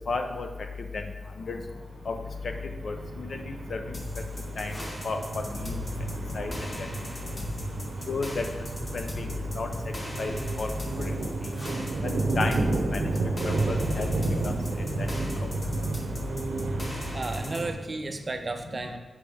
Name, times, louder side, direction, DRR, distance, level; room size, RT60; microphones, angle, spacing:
voice 1, 0.1-0.5 0.9-1.0 1.5-1.6 2.1-2.2 2.8-3.4 3.7-4.0 4.6-4.8 5.0-5.8 6.3-6.5 6.8-6.9 8.1-8.4 8.9-9.3 9.5-9.7 10.2-10.7 11.0-11.1 12.0-12.7 12.9-13.0 13.4-14.1 14.4-14.5 15.0-15.1, left 3 dB, 60° left, 5 dB, 0.6 m, -32 dB
sound 1, 1.8-17.7, right 3 dB, 90° right, 0.7 m, -32 dB
sound 2, 3.9-17.6, left 1 dB, 35° left, 0.9 m, -41 dB
voice 2, 17.1-19.0, right 2 dB, 35° right, 6 dB, 0.5 m, -33 dB
6.6 x 5.1 x 3.4 m, 1.2 s
wide cardioid pair, 140°, 0 cm